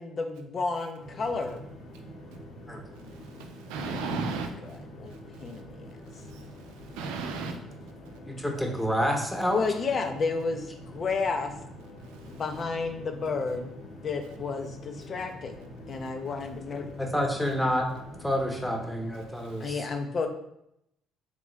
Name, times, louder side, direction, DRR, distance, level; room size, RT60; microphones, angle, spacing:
voice 1, 0.0-1.6 5.0-5.9 9.5-11.5 12.3-13.7 14.0-16.9 19.6-20.3, left 4 dB, 45° left, 6 dB, 0.7 m, -31 dB
sound 1, 1.0-19.5, equal, 70° left, 1.5 m, -46 dB
voice 2, 3.2-4.5 5.3-5.4 6.3-7.6 12.2-12.4 19.4-19.7, right 4 dB, 85° right, 4 dB, 0.5 m, -35 dB
voice 3, 8.3-9.6 17.0-17.9 18.2-19.9, equal, 5° left, 2 dB, 0.9 m, -28 dB
3.8 x 3.5 x 3.2 m, 0.78 s
supercardioid pair, 75°, 0 cm